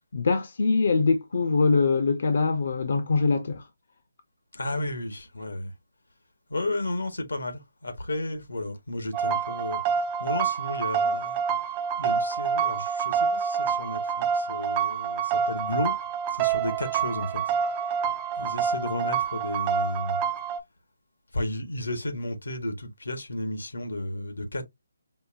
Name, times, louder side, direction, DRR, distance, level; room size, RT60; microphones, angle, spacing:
voice 1, 0.1-3.6, left 4 dB, 55° left, 0.6 m, -23 dB
voice 2, 4.5-5.7 6.5-9.8 10.2-11.4 12.0-15.9 16.3-17.5 18.4-20.2 21.3-24.6, left 1 dB, 85° left, 1.2 m, -33 dB
sound 1, 9.1-20.6, right 7 dB, 25° right, 0.3 m, -27 dB
5.3 x 2.2 x 2.5 m
figure-of-eight pair, 155°, 0 cm